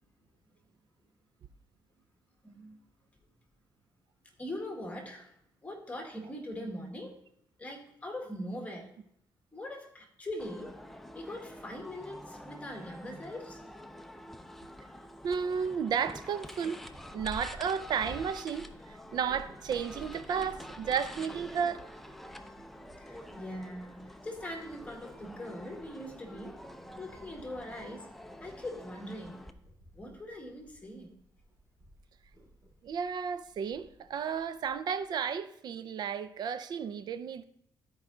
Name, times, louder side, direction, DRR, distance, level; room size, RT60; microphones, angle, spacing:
voice 1, 2.4-2.8 4.4-5.3 5.6-7.2 7.6-8.9 9.5-10.8 11.1-13.6 23.0-26.6 27.0-28.1 28.4-29.4 29.9-31.1, left 1 dB, 20° left, 1.6 m, -41 dB
sound 1, 10.4-29.5, equal, 5° left, 0.6 m, -48 dB
voice 2, 15.2-16.8 17.1-21.8 32.8-37.4, right 7 dB, 60° right, 0.5 m, -33 dB
Purr, 16.8-34.7, right 1 dB, 45° right, 3.4 m, -53 dB
13.0 x 4.8 x 3.8 m
cardioid pair, 105°, 8 cm